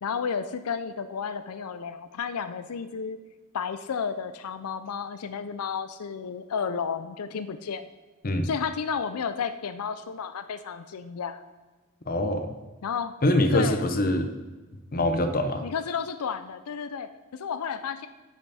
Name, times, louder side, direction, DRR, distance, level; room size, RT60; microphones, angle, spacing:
voice 1, 0.0-3.2 3.5-7.8 8.4-11.4 12.8-13.2 13.5-13.9 15.6-18.1, left 6 dB, 90° left, 11 dB, 0.5 m, -32 dB
voice 2, 12.1-12.5 13.2-14.3 14.9-15.6, left 1 dB, 40° left, 8 dB, 0.9 m, -24 dB
10.0 x 7.1 x 4.2 m, 1.2 s
head